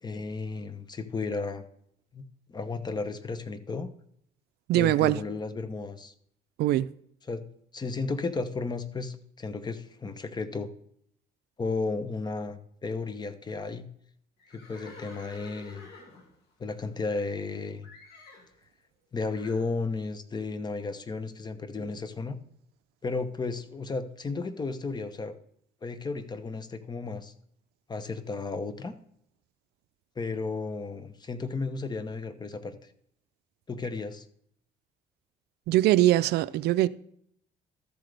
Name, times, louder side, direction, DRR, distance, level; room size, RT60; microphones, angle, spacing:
voice 1, 0.0-1.6 2.1-2.2 2.5-3.9 4.7-6.1 7.3-7.4 7.7-10.7 11.6-13.9 14.5-15.9 16.6-17.9 19.1-22.4 23.0-25.3 25.8-27.3 27.9-28.9 30.2-32.8 33.7-34.3, left 3 dB, 25° left, 0.8 m, -33 dB
voice 2, 4.7-5.2 6.6-6.9 35.7-36.9, right 15 dB, 75° right, 0.4 m, -22 dB
Livestock farm animals working animals, 14.4-17.5 17.8-18.5 19.3-19.7, left 3 dB, 70° left, 2.5 m, -50 dB
13.0 x 7.7 x 3.4 m
cardioid pair, 110°, 17 cm